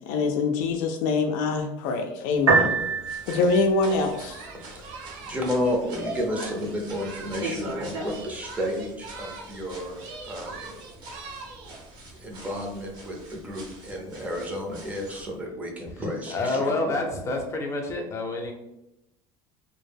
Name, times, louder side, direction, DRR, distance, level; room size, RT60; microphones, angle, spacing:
voice 1, 0.1-2.7 3.3-4.4, left 3 dB, 85° left, 3 dB, 0.4 m, -24 dB
Piano, 2.3-15.3, right 4 dB, 85° right, 0.8 m, -33 dB
sound 1, 3.0-15.2, right 1 dB, 45° right, 0.8 m, -42 dB
Singing, 3.8-7.6 7.9-9.7 9.9-11.8, right 3 dB, 70° right, 0.5 m, -41 dB
voice 2, 4.5-5.0 5.3-10.7 12.2-17.0, left 1 dB, 15° right, 0 dB, 0.6 m, -32 dB
voice 3, 16.3-18.5, left 2 dB, 30° left, 2 dB, 0.6 m, -28 dB
2.1 x 2.0 x 3.3 m, 0.86 s
cardioid pair, 135°, 10 cm